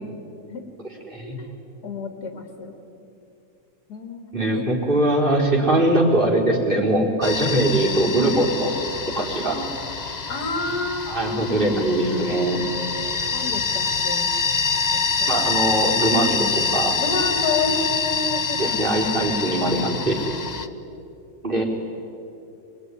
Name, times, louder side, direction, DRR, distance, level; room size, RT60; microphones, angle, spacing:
voice 1, 1.2-1.5 1.8-2.8 3.9-4.2 4.5-4.6 9.5-9.7 10.3-11.7 13.3-14.3 14.9-15.4 17.0-18.8 19.0-19.3, left 3 dB, 55° left, 4 dB, 3.0 m, -30 dB
voice 2, 4.3-8.7 9.2-9.6 11.1-12.6 15.3-17.0 18.6-20.2 21.4-21.6, right 1 dB, 25° right, -3 dB, 4.4 m, -21 dB
sound 1, 7.2-20.7, left 5 dB, 35° left, 0.7 m, -26 dB
26.5 x 21.5 x 9.9 m, 2.7 s
omnidirectional pair, 2.0 m